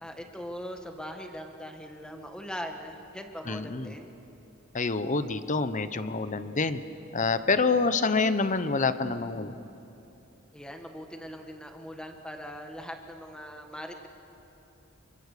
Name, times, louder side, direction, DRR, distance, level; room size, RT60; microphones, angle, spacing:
voice 1, 0.0-4.1 10.5-14.1, equal, 5° left, 4 dB, 1.7 m, -41 dB
voice 2, 3.5-3.9 4.7-6.8 7.1-9.7, left 4 dB, 35° left, 12 dB, 0.8 m, -27 dB
28.0 x 24.5 x 6.7 m, 2.9 s
head